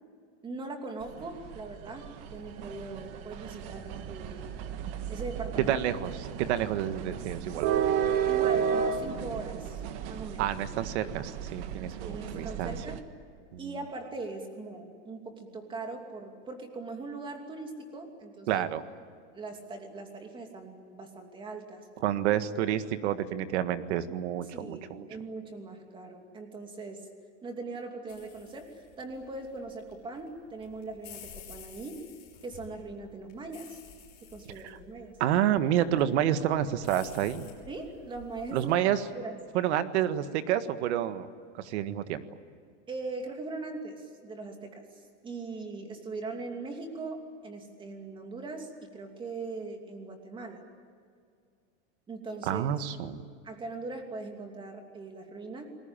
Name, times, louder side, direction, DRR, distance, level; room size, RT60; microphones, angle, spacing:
voice 1, 0.4-4.5 5.1-5.8 8.3-10.5 12.0-13.0 13.6-18.6 19.3-21.9 24.4-24.8 25.1-27.0 27.4-32.1 32.4-33.8 34.3-35.2 37.7-38.7 39.1-39.4 42.9-44.8 45.2-50.6 52.1-52.7 53.4-55.7, right 3 dB, 15° right, 4 dB, 2.8 m, -40 dB
sound 1, 1.0-13.0, right 8 dB, 40° right, 1.6 m, -33 dB
voice 2, 5.7-7.7 10.4-12.7 13.5-13.6 18.5-18.8 22.0-25.1 34.6-34.8 35.2-37.5 38.5-39.1 39.5-41.3 41.6-42.2 52.5-53.2, right 11 dB, 65° right, 11 dB, 1.7 m, -29 dB
sound 2, 28.1-38.8, left 7 dB, 25° left, 6.4 m, -52 dB
29.5 x 21.0 x 9.0 m, 2.2 s
supercardioid pair, 170°, 36 cm